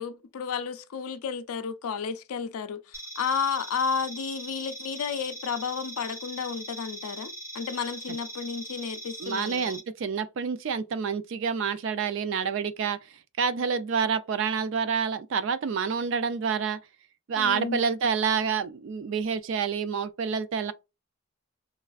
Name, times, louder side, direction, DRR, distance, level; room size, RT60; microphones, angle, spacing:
voice 1, 0.0-9.8 17.4-17.8, left 6 dB, 85° left, 0.4 m, -32 dB
sound 1, 2.9-9.8, equal, 10° right, 0.7 m, -41 dB
voice 2, 9.2-13.0 13.4-16.8 17.3-20.7, right 6 dB, 60° right, 0.3 m, -28 dB
3.1 x 2.4 x 2.3 m
head